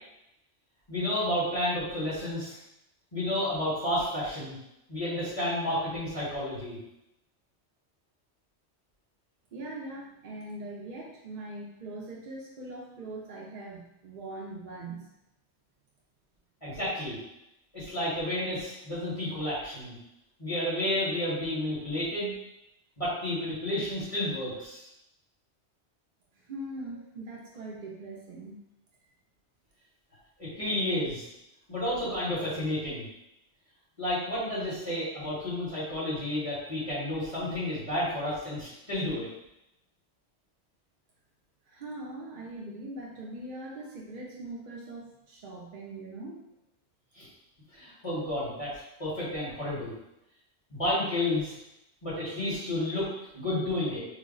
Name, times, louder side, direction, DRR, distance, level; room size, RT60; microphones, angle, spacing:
voice 1, 0.9-2.6 3.1-4.5 4.9-6.8 16.6-17.2 17.7-20.0 20.4-22.3 23.0-24.8 30.4-31.2 31.7-33.1 34.0-39.3 47.1-47.3 47.7-48.7 49.0-49.9 50.7-51.6 52.0-53.1 53.3-54.0, left 1 dB, 30° left, -10 dB, 1.4 m, -31 dB
voice 2, 9.5-15.1 26.4-28.6 41.7-46.4, right 2 dB, 55° right, -4 dB, 0.6 m, -41 dB
3.3 x 2.1 x 3.7 m, 0.84 s
omnidirectional pair, 1.2 m